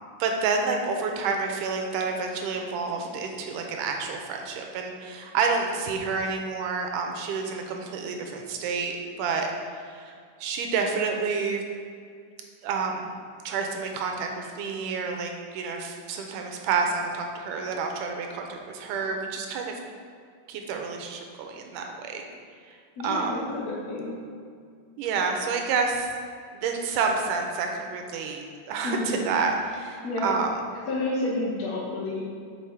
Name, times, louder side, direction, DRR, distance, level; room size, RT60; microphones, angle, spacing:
voice 1, 0.2-10.1 10.4-11.6 12.6-13.1 13.5-19.8 20.5-22.3 22.7-22.8 23.0-23.3 25.0-26.1 26.5-28.4 28.7-30.5, right 5 dB, 90° right, 3 dB, 2.2 m, -29 dB
voice 2, 23.0-24.2 28.8-29.2 30.0-30.3 30.7-32.2, left 2 dB, 60° left, -5 dB, 2.1 m, -30 dB
5.8 x 5.3 x 4.8 m, 2.2 s
omnidirectional pair, 3.7 m